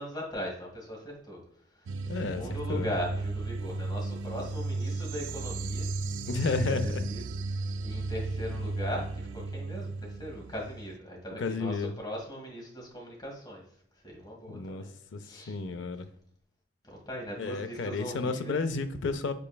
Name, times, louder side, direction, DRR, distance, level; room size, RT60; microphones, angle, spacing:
voice 1, 0.0-1.4 2.0-5.9 6.6-7.2 7.5-13.6 14.0-14.9 15.2-15.6 16.8-18.6, equal, 25° left, -1 dB, 1.6 m, -39 dB
sound 1, 1.9-11.0, right 3 dB, 70° right, 0.3 m, -34 dB
voice 2, 2.1-2.9 6.3-7.1 11.4-11.9 14.5-14.9 15.1-16.1 17.4-19.3, left 3 dB, 70° left, 10 dB, 0.5 m, -32 dB
5.4 x 4.2 x 2.2 m, 0.68 s
head